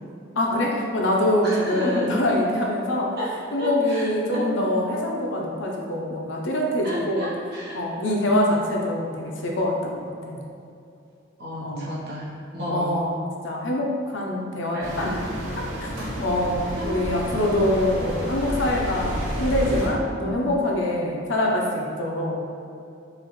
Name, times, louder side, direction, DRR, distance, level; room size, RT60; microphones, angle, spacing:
voice 1, 0.4-3.2 3.5-7.3 7.7-10.4 11.6-11.9 12.7-15.3 15.5-15.9 16.2-22.5, left 1 dB, 80° left, -1 dB, 0.6 m, -24 dB
voice 2, 1.4-2.1 3.2-4.5 6.8-7.8 8.3-8.5 11.4-12.9 14.7-15.1 16.0-16.1 16.8-16.9 20.2-20.4, equal, 55° right, -7 dB, 1.0 m, -32 dB
sound 1, 14.8-19.9, equal, 90° right, 0.8 m, -30 dB
4.8 x 2.5 x 3.1 m, 2.5 s
head